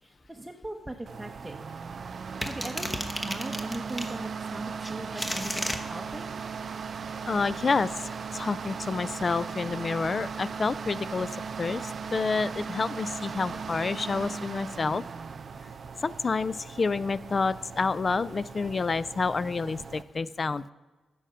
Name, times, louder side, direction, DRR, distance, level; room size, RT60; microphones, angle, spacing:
voice 1, 0.0-1.6 2.5-6.3, right 1 dB, 10° right, 1 dB, 0.8 m, -39 dB
sound 1, 1.1-20.0, right 5 dB, 55° right, 0.5 m, -38 dB
sound 2, 2.4-4.1 4.8-5.8, left 1 dB, 15° left, 1.0 m, -33 dB
voice 2, 7.2-11.3 11.6-15.0 16.0-20.6, left 4 dB, 40° left, 18 dB, 0.3 m, -29 dB
9.9 x 6.4 x 5.7 m, 1.3 s
cardioid pair, 75°, 0 cm